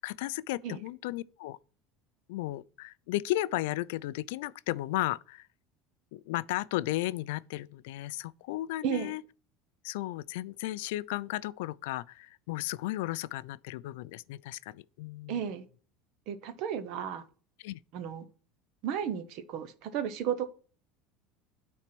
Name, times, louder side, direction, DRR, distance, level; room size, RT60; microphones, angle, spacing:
voice 1, 0.0-1.6 2.3-5.5 6.1-9.2 9.8-15.4 17.6-17.8, left 16 dB, 90° left, 0.4 m, -34 dB
voice 2, 8.8-9.2 15.3-15.6 16.3-17.2 17.9-18.3 18.8-20.5, right 8 dB, 45° right, 0.9 m, -33 dB
9.1 x 4.3 x 6.0 m
cardioid pair, 175°, 0 cm